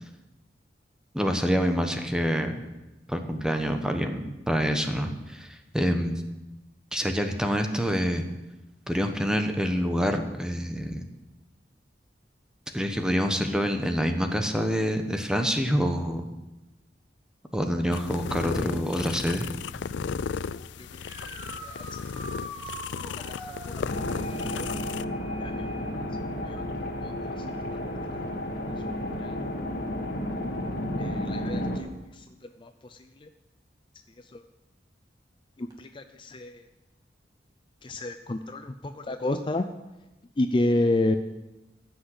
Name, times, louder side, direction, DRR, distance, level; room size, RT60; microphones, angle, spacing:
voice 1, 1.1-2.6 3.1-6.2 6.9-8.2 8.9-11.1 12.7-16.3 17.5-19.5, equal, 5° right, 5 dB, 1.1 m, -26 dB
sound 1, 17.9-25.0, left 6 dB, 85° left, 0.4 m, -35 dB
voice 2, 20.8-21.9 22.9-25.0 25.4-27.5 28.0-28.3 28.7-29.5 31.0-31.9 32.1-33.3 34.2-34.4 35.6-36.6 37.8-39.7 40.4-41.2, left 2 dB, 30° left, 8 dB, 0.5 m, -32 dB
sound 2, 20.9-23.9 27.2-27.3 29.4-29.5 35.7-35.8, right 1 dB, 20° right, 2.4 m, -42 dB
sound 3, 23.9-31.8, left 1 dB, 55° left, 2.0 m, -32 dB
15.0 x 6.3 x 8.0 m, 1.0 s
head